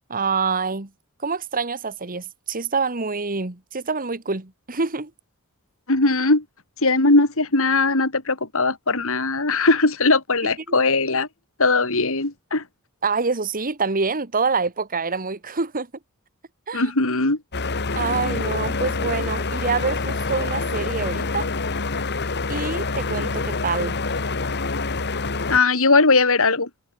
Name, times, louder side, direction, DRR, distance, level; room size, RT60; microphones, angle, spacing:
voice 1, 0.1-0.9 1.2-5.1 10.7-10.8 13.0-15.9 16.7-16.9 18.0-21.5 22.5-24.0, right 4 dB, 40° right, 1.9 m, -26 dB
voice 2, 5.9-6.4 6.8-11.3 11.6-12.6 16.7-17.4 25.5-26.7, left 3 dB, 65° left, 3.6 m, -19 dB
sound 1, 17.5-25.6, left 3 dB, 50° left, 2.1 m, -26 dB
head